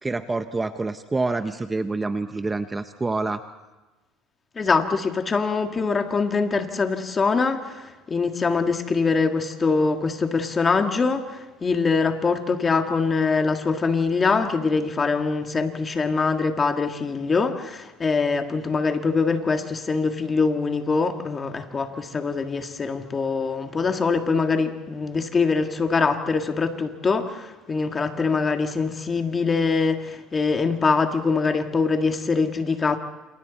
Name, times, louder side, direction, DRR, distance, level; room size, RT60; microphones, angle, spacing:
voice 1, 0.0-3.4, right 3 dB, 15° right, 10 dB, 0.8 m, -27 dB
voice 2, 4.6-33.0, left 4 dB, 25° left, 6 dB, 1.9 m, -23 dB
28.0 x 27.5 x 4.2 m, 1.1 s
supercardioid pair, 115°, 0 cm